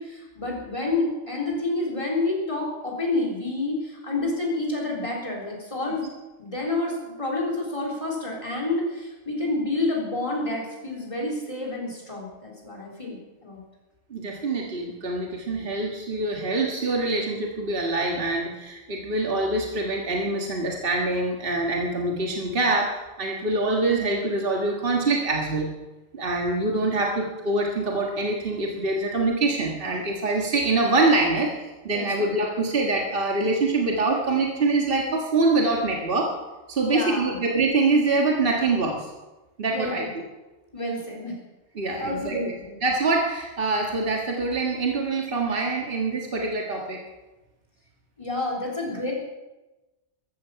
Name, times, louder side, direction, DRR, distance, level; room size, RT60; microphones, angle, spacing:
voice 1, 0.0-6.0 6.4-13.2 13.4-13.6 31.9-32.1 36.8-37.4 39.7-40.1 40.7-41.4 42.0-42.8 48.2-49.1, left 2 dB, 25° left, -1 dB, 3.9 m, -29 dB
voice 2, 14.1-22.9 23.2-25.7 26.1-36.3 36.7-39.1 39.6-40.3 41.8-42.4 42.8-47.0, right 3 dB, 50° right, 0 dB, 1.9 m, -24 dB
14.5 x 14.0 x 5.8 m, 1.1 s
omnidirectional pair, 1.2 m